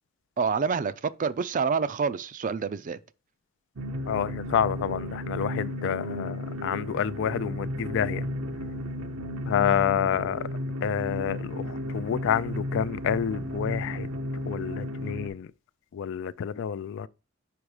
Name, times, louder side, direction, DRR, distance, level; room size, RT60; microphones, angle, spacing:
voice 1, 0.4-3.0, right 5 dB, 40° right, 0.4 m, -27 dB
sound 1, 3.8-15.3, equal, 75° right, 0.7 m, -34 dB
voice 2, 4.1-8.2 9.5-10.5 10.8-14.1 14.5-15.5 15.9-17.1, left 8 dB, 60° left, 0.3 m, -28 dB
5.2 x 5.1 x 4.8 m
head